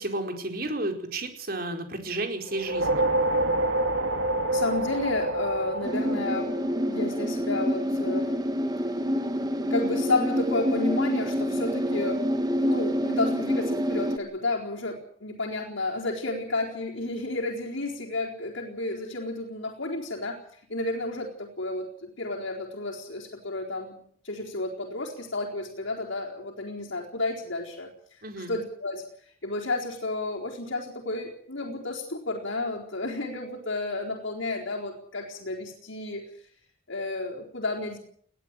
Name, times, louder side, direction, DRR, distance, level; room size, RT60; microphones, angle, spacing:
voice 1, 0.0-3.0 28.2-28.5, right 2 dB, 50° right, 5 dB, 4.5 m, -32 dB
sound 1, 2.5-7.1, right 2 dB, 85° right, 3.6 m, -27 dB
voice 2, 4.5-6.6 6.9-8.3 9.7-12.2 12.6-20.4 20.7-23.9 24.2-36.5 36.9-38.0, left 2 dB, 75° left, -3 dB, 4.4 m, -31 dB
sound 2, 5.8-14.2, equal, 20° right, 1.8 m, -27 dB
21.5 x 16.0 x 9.1 m, 0.63 s
head